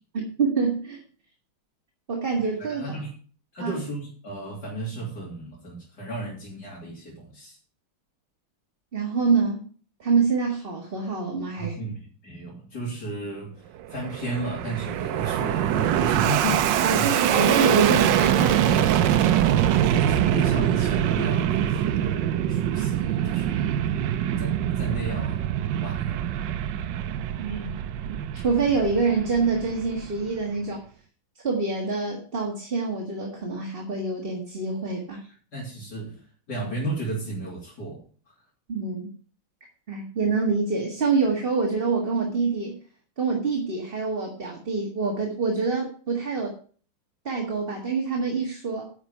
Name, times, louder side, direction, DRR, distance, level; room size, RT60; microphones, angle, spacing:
voice 1, 0.2-1.0 2.1-3.0 3.6-3.8 8.9-9.6 10.0-11.8 16.8-19.3 27.4-27.7 28.3-30.8 31.4-35.2 38.7-39.1 39.9-42.8 43.2-46.5 47.3-48.9, right 4 dB, 30° right, 0 dB, 1.8 m, -26 dB
voice 2, 2.6-3.1 3.5-7.6 11.5-13.6 13.9-17.1 19.9-22.2 22.5-23.8 24.4-25.5 25.8-26.3 35.2-36.2 36.5-38.3, right 2 dB, 50° left, -5 dB, 3.6 m, -34 dB
Fixed-wing aircraft airplane, 13.8-30.4, right 11 dB, 70° right, 1.2 m, -24 dB
9.9 x 6.2 x 6.7 m, 0.42 s
omnidirectional pair, 2.2 m